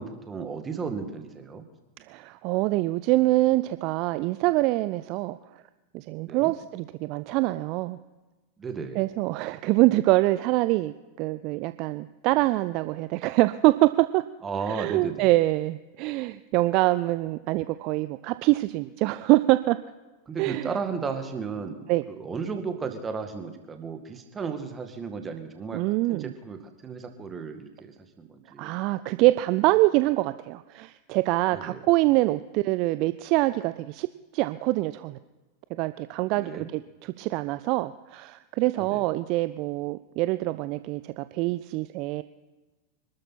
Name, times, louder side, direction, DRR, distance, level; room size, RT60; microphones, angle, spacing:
voice 1, 0.0-1.6 6.3-6.5 8.6-9.0 14.4-15.3 20.3-25.8 26.1-28.8 29.1-29.2 31.5-31.8 36.3-36.7 38.8-39.0, right 5 dB, 20° right, 6 dB, 2.0 m, -34 dB
voice 2, 2.1-5.4 5.9-8.0 9.0-14.2 14.7-19.8 20.4-20.7 21.9-22.0 25.7-26.3 28.6-34.1 34.3-35.2 35.7-42.2, right 19 dB, 40° right, 14 dB, 0.5 m, -25 dB
26.0 x 13.0 x 4.3 m, 1.2 s
figure-of-eight pair, 90°, 0 cm